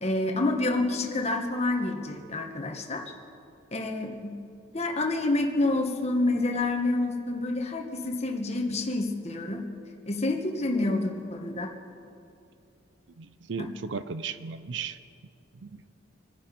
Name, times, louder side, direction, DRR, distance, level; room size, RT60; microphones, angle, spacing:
voice 1, 0.0-3.1 3.7-4.4 4.7-9.6 10.1-11.7 13.6-13.7, left 2 dB, 35° left, 2 dB, 1.4 m, -28 dB
voice 2, 13.2-15.0 15.5-15.9, right 5 dB, 65° right, 13 dB, 0.6 m, -36 dB
26.0 x 10.0 x 5.3 m, 2.6 s
head